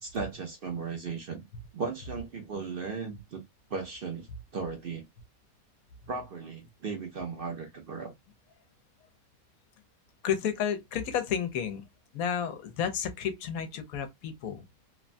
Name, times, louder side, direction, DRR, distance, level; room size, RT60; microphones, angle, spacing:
voice 1, 0.0-1.4 1.7-3.4 3.7-4.3 4.5-5.0 6.1-8.1, right 5 dB, 55° right, 0.7 m, -36 dB
voice 2, 10.2-11.9 12.1-14.6, left 8 dB, 85° left, 1.1 m, -31 dB
3.1 x 2.2 x 2.5 m
omnidirectional pair, 1.5 m